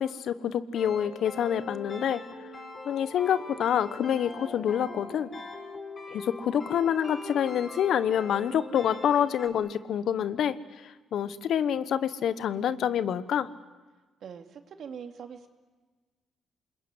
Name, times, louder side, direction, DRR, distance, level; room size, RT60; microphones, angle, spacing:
voice 1, 0.0-2.2 2.8-5.3 6.1-10.6 11.1-13.5, left 9 dB, 70° left, 15 dB, 1.1 m, -27 dB
sound 1, 0.7-9.5, left 3 dB, 30° left, 5.3 m, -42 dB
voice 2, 14.2-15.5, right 7 dB, 65° right, 7 dB, 2.4 m, -42 dB
26.5 x 21.5 x 9.8 m, 1.3 s
cardioid pair, 90°, 0 cm